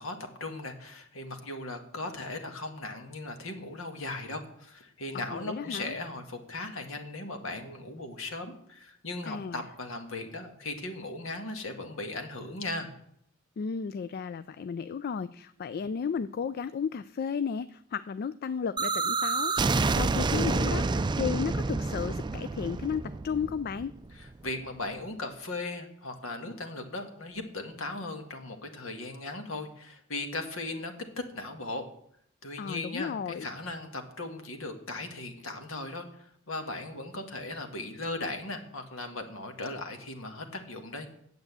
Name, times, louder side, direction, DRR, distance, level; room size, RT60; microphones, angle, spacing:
voice 1, 0.0-12.9 24.1-30.9 31.3-31.8 32.4-41.1, left 2 dB, 70° left, 5 dB, 1.8 m, -38 dB
voice 2, 5.3-5.9 9.3-9.6 13.6-19.5 19.9-23.9 32.6-33.5, left 6 dB, 50° left, 14 dB, 0.3 m, -34 dB
sound 1, 18.8-24.5, right 3 dB, 20° right, 0.4 m, -29 dB
9.7 x 7.9 x 8.1 m, 0.70 s
head